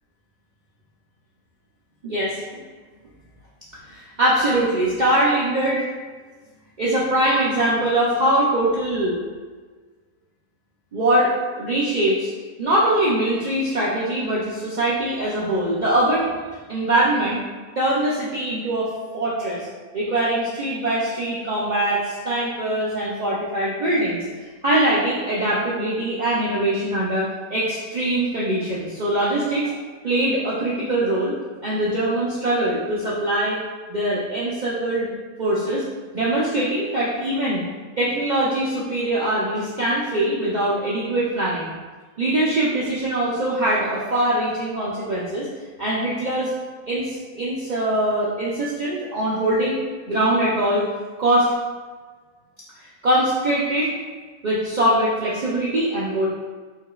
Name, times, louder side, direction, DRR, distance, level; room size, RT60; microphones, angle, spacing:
voice 1, 2.0-2.6 3.9-5.9 6.8-9.2 10.9-12.3 12.6-16.3 16.7-17.4 17.8-19.7 19.9-24.3 24.6-29.7 30.0-31.3 31.6-33.6 33.9-35.1 35.4-35.8 36.1-37.6 38.0-41.7 42.2-45.5 45.8-46.5 46.9-49.8 50.1-50.8 51.2-51.5 52.8-53.9 54.4-56.3, right 1 dB, 90° right, -7 dB, 0.4 m, -22 dB
4.8 x 2.6 x 2.3 m, 1.4 s
omnidirectional pair, 1.5 m